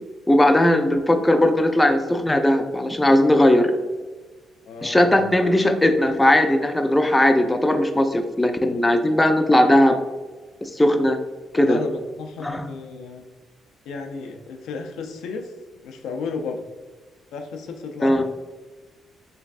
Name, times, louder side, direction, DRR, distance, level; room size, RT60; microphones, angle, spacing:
voice 1, 0.3-3.7 4.8-10.0 10.6-11.2 11.5-11.8 12.4-12.7 18.0-18.2, left 1 dB, 10° left, 6 dB, 0.3 m, -18 dB
voice 2, 4.7-5.2 11.6-13.3 13.9-15.5 15.8-16.6 17.3-18.2, left 4 dB, 85° left, 4 dB, 0.4 m, -33 dB
3.3 x 3.1 x 2.4 m, 1.3 s
cardioid pair, 90°, 0 cm